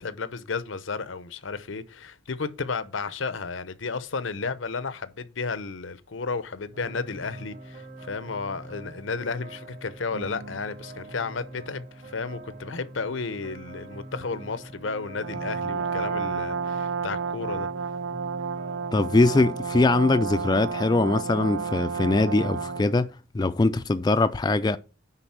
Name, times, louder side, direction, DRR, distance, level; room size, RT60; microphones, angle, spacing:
voice 1, 0.0-17.9, left 4 dB, 80° left, 0.8 m, -33 dB
sound 1, 6.7-22.9, right 1 dB, 50° right, 2.0 m, -43 dB
Brass instrument, 15.2-23.0, right 6 dB, 80° right, 0.5 m, -31 dB
voice 2, 18.9-24.8, left 2 dB, 20° left, 0.4 m, -22 dB
9.9 x 4.0 x 5.9 m
head